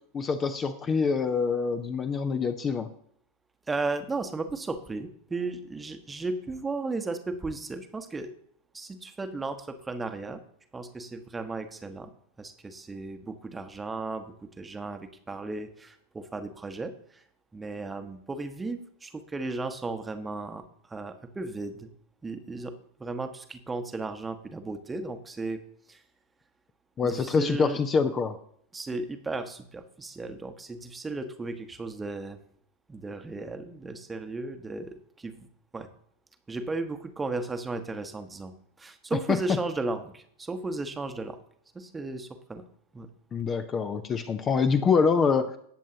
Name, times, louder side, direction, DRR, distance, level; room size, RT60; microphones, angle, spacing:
voice 1, 0.1-2.9 27.0-28.4 43.3-45.6, left 5 dB, 25° left, 9 dB, 0.7 m, -25 dB
voice 2, 3.7-8.3 8.7-10.4 10.7-12.1 12.4-17.2 17.5-21.9 22.2-22.7 23.0-25.6 25.9-26.0 27.0-27.8 28.7-32.4 32.9-35.5 35.7-35.9 36.5-41.4 41.7-42.6 42.9-43.1, right 3 dB, 10° right, 8 dB, 1.1 m, -35 dB
19.0 x 7.5 x 2.8 m, 0.64 s
figure-of-eight pair, 90°, 0 cm